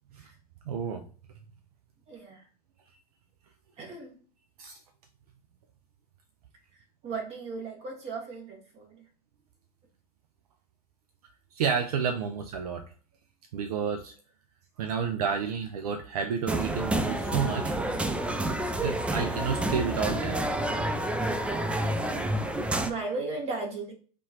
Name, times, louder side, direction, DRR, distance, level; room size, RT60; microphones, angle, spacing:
voice 1, 0.7-1.0 4.6-4.8 11.5-12.8 13.5-14.1 14.8-17.8 18.8-20.4, right 6 dB, 70° right, 7 dB, 0.6 m, -30 dB
voice 2, 2.1-2.4 3.8-4.2 7.0-9.0 22.8-23.9, right 3 dB, 35° right, 1 dB, 1.7 m, -36 dB
sound 1, 16.5-22.9, right 1 dB, 5° right, 0.3 m, -29 dB
4.4 x 3.0 x 2.9 m, 0.40 s
hypercardioid pair, 105°, 20 cm